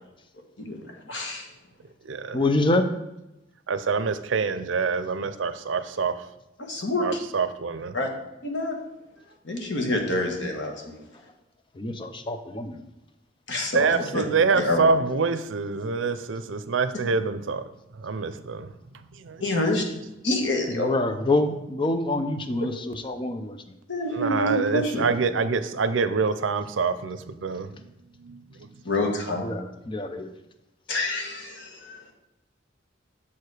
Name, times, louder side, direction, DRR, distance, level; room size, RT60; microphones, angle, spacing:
voice 1, 1.1-1.5 6.6-7.0 7.9-8.1 8.4-8.8 9.4-11.0 13.5-14.2 14.5-14.9 19.4-19.8 20.2-20.9 23.9-25.1 28.8-29.4 30.9-32.0, left 2 dB, 70° left, 2 dB, 1.3 m, -27 dB
voice 2, 1.8-2.4 3.7-6.3 6.7-7.9 13.7-17.6 17.9-19.5 24.1-27.9 28.2-28.8, right 4 dB, 90° right, 12 dB, 0.5 m, -26 dB
voice 3, 2.3-2.9 11.7-12.8 20.7-23.8 29.4-30.3, left 2 dB, 25° left, 8 dB, 0.5 m, -26 dB
7.0 x 4.8 x 4.8 m, 0.93 s
head